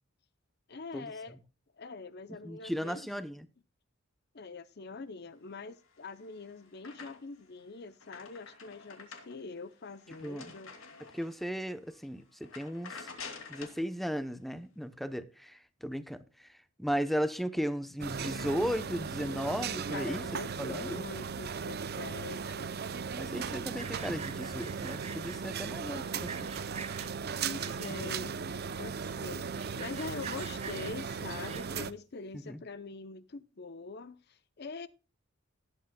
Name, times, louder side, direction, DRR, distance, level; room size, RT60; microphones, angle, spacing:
voice 1, 0.7-1.4 1.8-3.1 4.3-10.7 19.9-22.7 27.4-28.4 28.8-34.9, left 3 dB, 50° left, 0.6 m, -44 dB
voice 2, 2.4-3.5 10.2-10.5 11.1-13.1 13.5-16.5 16.8-20.2 20.6-21.1 23.1-26.4 32.5-32.6, equal, ahead, 0.8 m, -36 dB
sound 1, 5.9-7.5 7.8-11.5 11.9-12.1 12.4-13.8, left 5 dB, 75° left, 2.5 m, -48 dB
sound 2, 18.0-31.9, right 6 dB, 50° right, 0.6 m, -37 dB
Sawing, 23.2-25.4 25.9-27.1 27.6-28.2 28.6-28.7 28.9-29.0 29.4-31.9, right 5 dB, 30° right, 1.4 m, -46 dB
18.5 x 8.4 x 2.3 m
head